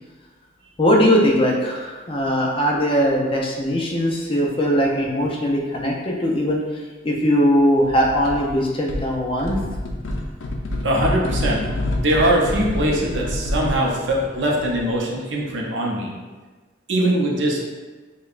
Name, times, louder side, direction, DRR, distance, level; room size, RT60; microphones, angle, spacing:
voice 1, 0.8-6.6 7.0-9.6, equal, 25° left, -1 dB, 0.5 m, -20 dB
sound 1, 7.8-8.5 8.9-14.9, left 1 dB, 80° left, 0.4 m, -28 dB
voice 2, 10.8-11.6 12.0-16.1 16.9-17.6, right 1 dB, 75° right, -2 dB, 0.6 m, -21 dB
5.1 x 2.2 x 2.4 m, 1.3 s
head